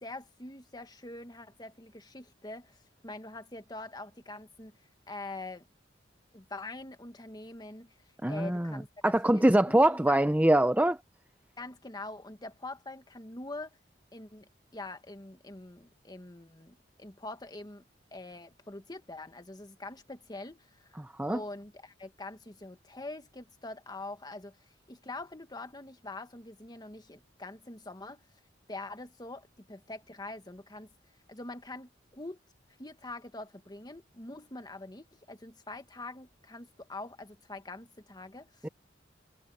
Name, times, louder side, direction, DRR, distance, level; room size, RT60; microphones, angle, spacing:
voice 1, 0.0-4.8 5.1-5.7 6.3-7.9 8.2-10.2 11.6-13.8 14.1-17.9 18.1-21.0 21.3-24.6 24.9-28.2 28.7-30.9 31.3-32.4 32.8-38.7, left 2 dB, 25° left, 1.7 m, -44 dB
voice 2, 8.2-8.7 9.0-11.0 21.0-21.4 38.6-38.7, right 1 dB, 10° right, 0.7 m, -24 dB
head